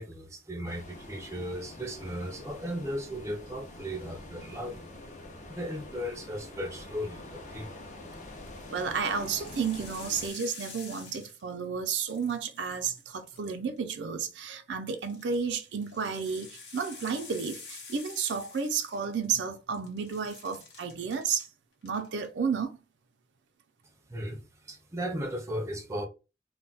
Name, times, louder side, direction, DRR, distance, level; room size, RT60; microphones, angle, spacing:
voice 1, 0.0-5.0 5.5-7.7 24.1-26.1, equal, 15° right, 0.5 m, -36 dB
sound 1, 0.7-10.3, left 2 dB, 40° left, 0.6 m, -46 dB
voice 2, 8.7-21.5 21.8-22.8, right 6 dB, 85° right, 0.5 m, -32 dB
sound 2, 8.9-11.7 11.9-13.8 14.9-19.5 19.7-21.5 21.8-22.3, left 4 dB, 80° left, 0.9 m, -48 dB
2.3 x 2.1 x 3.8 m
head